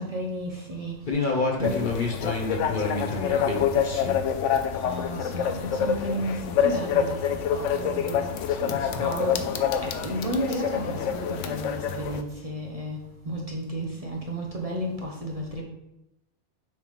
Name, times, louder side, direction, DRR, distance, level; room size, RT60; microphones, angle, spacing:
voice 1, 0.0-1.8 4.7-8.7 9.0-15.6, right 1 dB, 35° right, -1 dB, 0.8 m, -33 dB
voice 2, 1.1-4.2 8.5-9.0, left 3 dB, 45° left, 1 dB, 1.1 m, -29 dB
sound 1, 1.6-12.2, left 8 dB, 85° left, 0.9 m, -27 dB
6.5 x 3.4 x 5.0 m, 0.90 s
omnidirectional pair, 1.2 m